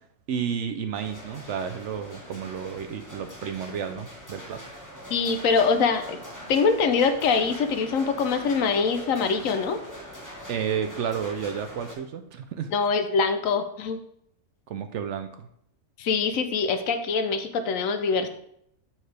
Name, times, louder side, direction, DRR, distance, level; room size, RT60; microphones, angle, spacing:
voice 1, 0.3-4.6 10.5-12.7 14.7-15.5, right 7 dB, 65° right, 7 dB, 0.8 m, -31 dB
sound 1, 0.9-11.9, equal, 15° left, 1.2 m, -43 dB
voice 2, 5.1-6.2 6.5-9.8 12.7-14.0 16.0-18.3, left 5 dB, 70° left, 8 dB, 1.1 m, -24 dB
7.2 x 6.0 x 3.3 m, 0.72 s
omnidirectional pair, 1.5 m